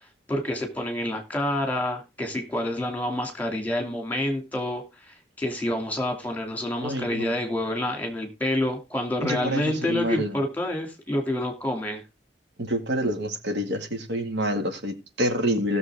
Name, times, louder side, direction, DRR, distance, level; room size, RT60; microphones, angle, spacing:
voice 1, 0.3-12.0, left 1 dB, 10° left, 4 dB, 2.6 m, -28 dB
voice 2, 6.8-7.3 9.2-10.4 12.6-15.8, equal, 85° right, 5 dB, 2.2 m, -27 dB
16.5 x 6.9 x 3.6 m, 0.26 s
head